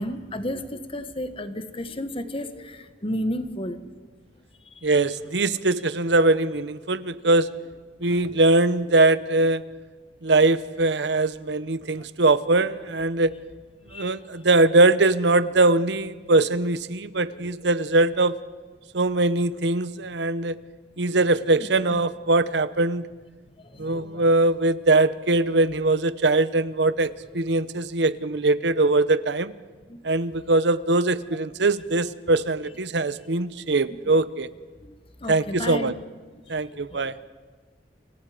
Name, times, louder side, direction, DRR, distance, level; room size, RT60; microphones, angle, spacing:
voice 1, 0.0-4.1 4.7-4.9 8.0-8.4 8.8-8.9 9.4-9.5 12.0-12.1 12.6-12.7 13.9-14.2 17.0-17.6 21.0-22.0 23.6-24.3 29.9-30.2 34.8-36.0 36.5-37.3, left 1 dB, 30° left, 10 dB, 1.4 m, -34 dB
voice 2, 4.8-7.5 8.0-9.6 10.2-13.3 13.9-18.3 18.9-20.5 21.0-23.1 23.8-29.5 30.0-34.5 35.3-35.9 36.5-37.1, right 2 dB, 70° right, 15 dB, 0.9 m, -21 dB
29.5 x 25.5 x 5.1 m, 1.4 s
head